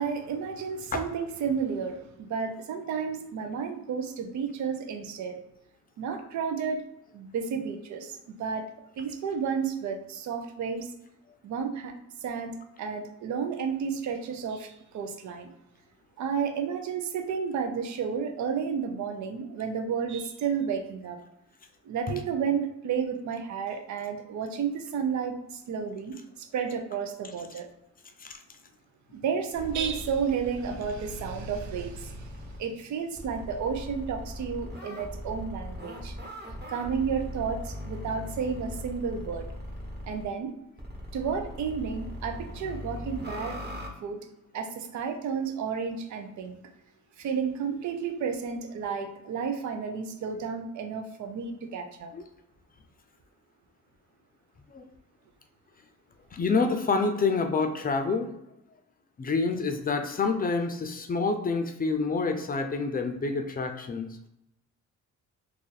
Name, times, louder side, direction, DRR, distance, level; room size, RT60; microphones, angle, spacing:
voice 1, 0.0-5.4 6.0-6.8 7.1-8.7 9.0-10.9 11.4-11.9 12.2-15.5 16.2-21.2 21.8-27.7 29.1-36.1 36.7-39.5 40.1-40.5 41.1-43.6 44.0-44.2 44.5-46.6 47.2-52.1, right 6 dB, 70° right, 5 dB, 0.7 m, -32 dB
sound 1, 29.5-32.6 33.2-40.2 40.8-43.9, left 1 dB, 35° right, 1.2 m, -39 dB
voice 2, 56.3-58.3 59.2-64.1, left 4 dB, 30° left, 6 dB, 0.5 m, -27 dB
2.7 x 2.6 x 4.0 m, 0.85 s
cardioid pair, 90°, 30 cm